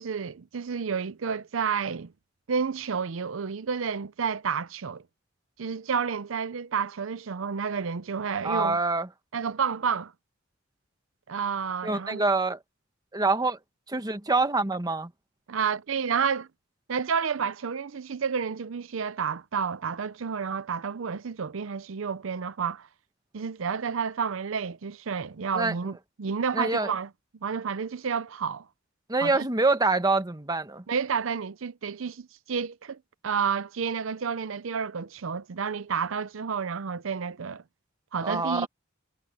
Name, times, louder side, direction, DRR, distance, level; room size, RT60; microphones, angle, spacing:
voice 1, 0.0-2.1 2.5-5.0 5.6-8.8 9.3-10.1 11.3-12.2 15.5-16.5 16.9-22.9 23.3-27.1 27.4-28.6 29.2-29.5 30.9-33.0 33.2-37.6 38.1-38.7, right 6 dB, 80° right, 0.6 m, -30 dB
voice 2, 8.4-9.1 11.8-12.6 13.1-13.6 13.9-15.1 25.5-25.7 26.5-26.9 29.1-30.8 38.2-38.7, right 3 dB, 20° right, 1.2 m, -25 dB
head